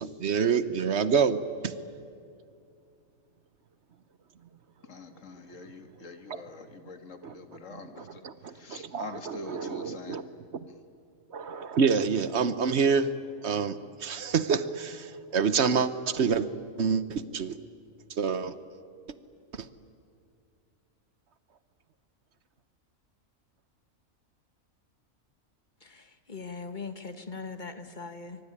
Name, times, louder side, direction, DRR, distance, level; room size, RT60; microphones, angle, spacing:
voice 1, 0.0-1.4 1.6-1.7 7.2-7.3 7.7-10.2 11.3-13.1 13.4-16.5 16.8-17.6 18.2-18.5 19.6-19.7, right 6 dB, 55° right, 14 dB, 1.2 m, -27 dB
voice 2, 4.9-8.2 8.6-10.2, left 3 dB, 65° left, 7 dB, 2.1 m, -44 dB
voice 3, 26.3-28.4, left 4 dB, 35° left, 9 dB, 1.3 m, -39 dB
24.0 x 23.5 x 9.9 m, 2.4 s
omnidirectional pair, 1.4 m